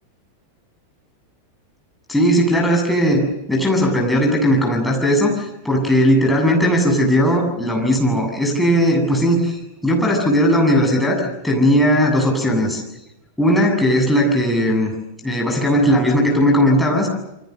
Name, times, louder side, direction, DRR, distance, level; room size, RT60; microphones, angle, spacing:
voice 1, 2.1-3.2 3.5-12.8 13.4-14.9 15.2-17.1, equal, 5° left, 1 dB, 7.5 m, -17 dB
28.5 x 25.0 x 6.8 m, 0.89 s
figure-of-eight pair, 90°, 0 cm